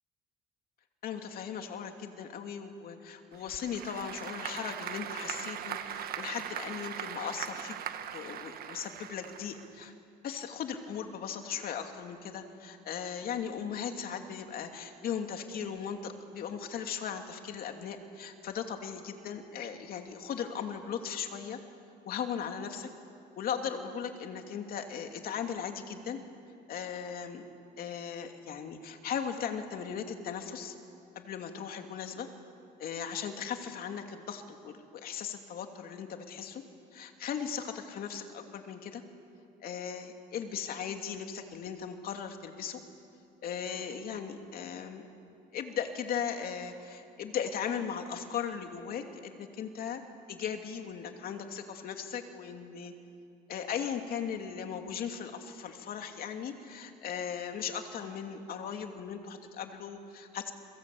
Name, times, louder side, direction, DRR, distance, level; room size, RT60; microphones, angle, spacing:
voice 1, 1.0-7.8 8.1-9.9 10.2-21.6 22.0-22.9 23.4-26.2 26.7-27.4 27.8-30.7 31.1-32.3 32.8-36.6 36.9-39.0 39.6-42.8 43.4-45.0 45.5-50.0 50.3-52.9 53.5-60.5, left 7 dB, 60° left, 5 dB, 2.8 m, -38 dB
Applause / Crowd, 3.3-9.9, right 9 dB, 65° right, 1.5 m, -40 dB
29.5 x 23.0 x 8.6 m, 2.5 s
cardioid pair, 110°, 17 cm